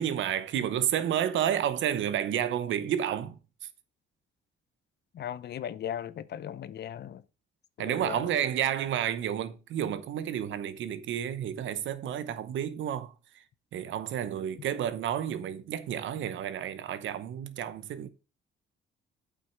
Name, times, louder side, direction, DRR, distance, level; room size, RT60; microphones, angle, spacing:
voice 1, 0.0-3.4 7.8-13.4 13.7-18.1, right 10 dB, 75° right, 0.9 m, -31 dB
voice 2, 5.1-7.2 7.8-8.3, left 10 dB, 60° left, 0.7 m, -37 dB
8.3 x 5.8 x 4.6 m
cardioid pair, 90°, 20 cm